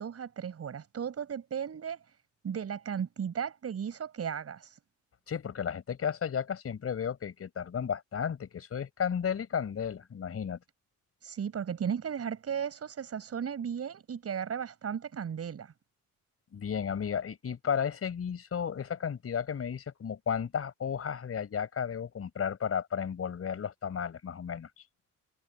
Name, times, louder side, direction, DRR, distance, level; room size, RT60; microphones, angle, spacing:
voice 1, 0.0-2.0 2.4-4.7 11.2-15.7, right 7 dB, 50° right, 6.7 m, -35 dB
voice 2, 5.3-10.6 16.5-24.7, left 7 dB, 50° left, 5.0 m, -33 dB
cardioid pair, 90°, 30 cm